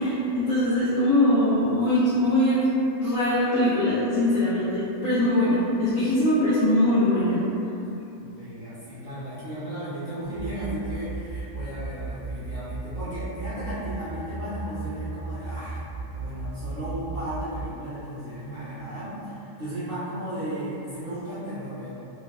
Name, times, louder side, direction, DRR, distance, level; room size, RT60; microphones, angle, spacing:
voice 1, 0.0-2.6 3.0-7.4, left 1 dB, 65° left, -13 dB, 0.9 m, -22 dB
voice 2, 8.2-21.9, right 1 dB, 65° right, -14 dB, 0.5 m, -35 dB
sound 1, 10.4-17.6, right 4 dB, 15° left, 0.7 m, -35 dB
3.1 x 2.1 x 2.3 m, 2.8 s
omnidirectional pair, 1.8 m